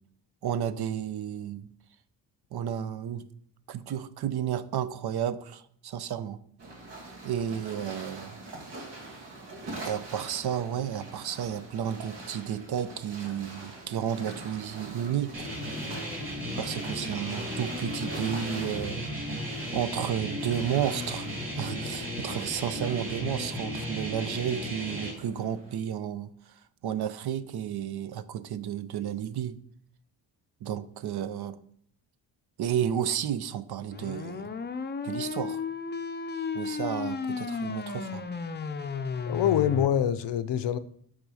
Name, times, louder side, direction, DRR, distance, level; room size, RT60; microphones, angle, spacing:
voice 1, 0.4-1.7 2.5-3.3 3.7-6.4 7.2-8.4 9.8-15.5 16.6-19.1 19.7-26.3 26.8-29.6 30.6-31.6 32.6-34.5 35.0-35.6 36.5-38.2, right 9 dB, 70° right, 0.6 m, -32 dB
sound 1, 6.6-25.7, right 2 dB, 85° right, 2.4 m, -44 dB
sound 2, 15.3-25.1, equal, 30° right, 2.7 m, -35 dB
sound 3, 33.9-39.9, left 5 dB, 25° left, 0.5 m, -34 dB
voice 2, 39.3-40.8, left 10 dB, 85° left, 0.6 m, -25 dB
8.3 x 3.7 x 6.2 m
wide cardioid pair, 125°, 41 cm